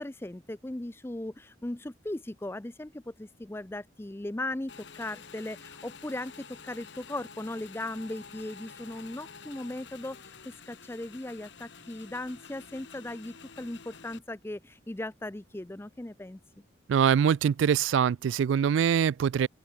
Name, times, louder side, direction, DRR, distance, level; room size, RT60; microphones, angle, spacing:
voice 1, 0.0-16.4, left 1 dB, 15° left, 0.5 m, -38 dB
Motorcycle / Engine, 4.7-14.2, left 6 dB, 75° left, 1.4 m, -49 dB
voice 2, 16.9-19.5, right 8 dB, 90° right, 0.3 m, -24 dB
open air
head